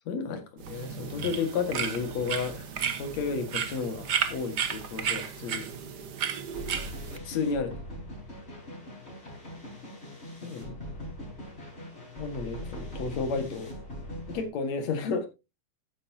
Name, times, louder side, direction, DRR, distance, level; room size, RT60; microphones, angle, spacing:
voice 1, 0.1-2.7 3.0-5.7 7.2-7.7 10.4-10.8 12.2-13.8 14.3-15.3, left 5 dB, 60° left, 2.9 m, -32 dB
sound 1, 0.6-7.2, right 7 dB, 75° right, 0.9 m, -33 dB
sound 2, 6.5-14.4, equal, 20° left, 4.3 m, -41 dB
13.0 x 9.5 x 2.8 m
omnidirectional pair, 3.6 m